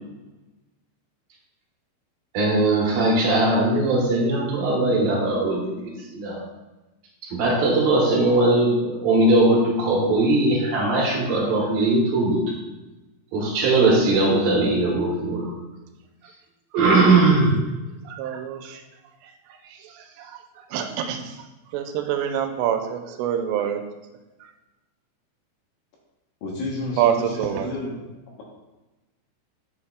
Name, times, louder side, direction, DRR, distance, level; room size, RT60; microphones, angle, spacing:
voice 1, 2.3-6.4 7.3-12.4 13.3-15.6 16.7-17.6, right 2 dB, 65° right, -3 dB, 2.7 m, -20 dB
voice 2, 18.1-18.8 20.2-20.3 20.7-21.3 21.7-23.8 27.0-27.7, right 9 dB, 85° right, 6 dB, 2.7 m, -25 dB
voice 3, 26.4-28.0, left 2 dB, 70° left, -2 dB, 2.5 m, -31 dB
8.4 x 7.0 x 2.3 m, 1.1 s
omnidirectional pair, 4.8 m